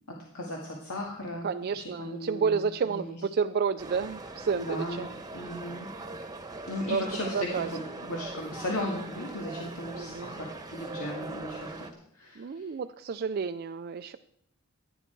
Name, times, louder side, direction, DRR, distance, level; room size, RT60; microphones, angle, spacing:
voice 1, 0.1-1.5 1.8-3.2 4.6-5.9 6.7-11.7 12.1-12.7, left 1 dB, 85° left, -1 dB, 2.1 m, -36 dB
voice 2, 1.4-5.1 6.9-7.7 9.9-10.4 12.4-14.2, right 5 dB, 45° right, 8 dB, 0.4 m, -30 dB
sound 1, 3.8-11.9, right 2 dB, 20° right, 1.2 m, -41 dB
15.0 x 10.0 x 4.6 m, 0.72 s
head